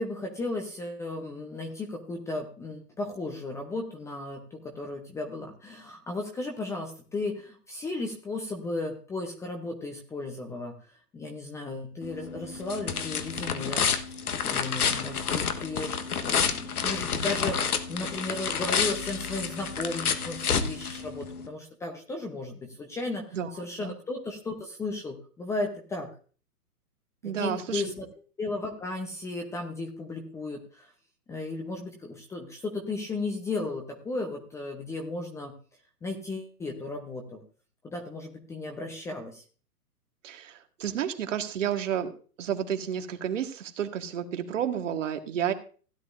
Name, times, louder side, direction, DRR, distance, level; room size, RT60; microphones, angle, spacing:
voice 1, 0.0-10.7 11.1-15.9 16.2-26.1 27.2-28.1 28.4-30.9 31.3-35.5 36.0-37.4 37.8-39.4, left 2 dB, 5° left, 3 dB, 0.7 m, -35 dB
sound 1, 12.0-21.5, left 6 dB, 70° left, 1.4 m, -29 dB
voice 2, 27.2-27.8 40.2-42.1 42.4-45.5, right 9 dB, 50° right, 6 dB, 1.6 m, -31 dB
16.0 x 10.5 x 2.6 m, 0.39 s
figure-of-eight pair, 130°, 47 cm